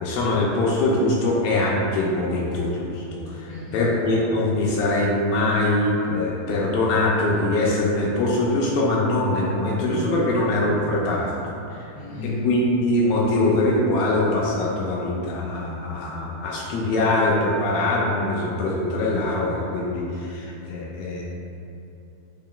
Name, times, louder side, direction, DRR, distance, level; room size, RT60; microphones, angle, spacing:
voice 1, 0.0-11.4 11.7-11.9 12.2-21.2, left 2 dB, 80° left, -4 dB, 2.2 m, -23 dB
voice 2, 3.5-3.9 11.9-12.4, left 1 dB, 55° left, -10 dB, 1.0 m, -33 dB
6.7 x 3.1 x 2.3 m, 2.8 s
omnidirectional pair, 4.2 m